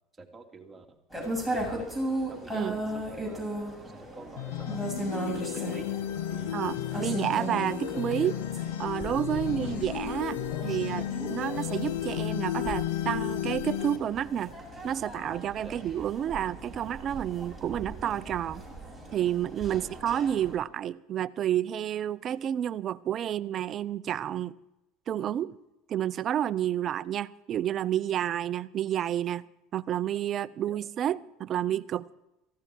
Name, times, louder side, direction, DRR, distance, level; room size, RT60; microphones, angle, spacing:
voice 1, 0.2-0.8 1.2-1.9 2.3-3.5 3.9-4.8 5.3-6.0 6.3-7.2 15.6-15.8 19.7-19.8 26.8-26.9 30.7-30.8, right 4 dB, 15° right, 2.7 m, -46 dB
sound 1, 1.1-20.6, right 1 dB, 5° left, 7.0 m, -37 dB
sound 2, 4.4-14.0, left 12 dB, 80° left, 1.1 m, -33 dB
voice 2, 6.5-8.4 8.8-14.5 14.8-18.6 19.1-24.6 25.1-25.6 25.9-29.4 29.7-32.0, right 10 dB, 45° right, 0.6 m, -30 dB
18.0 x 15.5 x 4.6 m
supercardioid pair, 100°, 0 cm